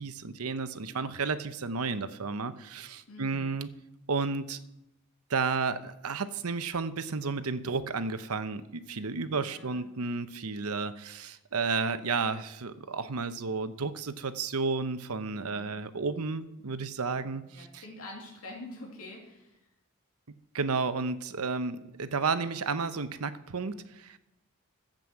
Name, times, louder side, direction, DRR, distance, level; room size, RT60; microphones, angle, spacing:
voice 1, 0.0-3.7 4.1-4.6 5.3-17.8 20.3-24.2, right 4 dB, 85° right, 11 dB, 0.9 m, -32 dB
voice 2, 3.1-3.5 9.2-9.9 15.4-15.7 17.1-19.6, left 2 dB, 75° left, -1 dB, 2.6 m, -46 dB
13.0 x 7.7 x 7.7 m, 0.88 s
head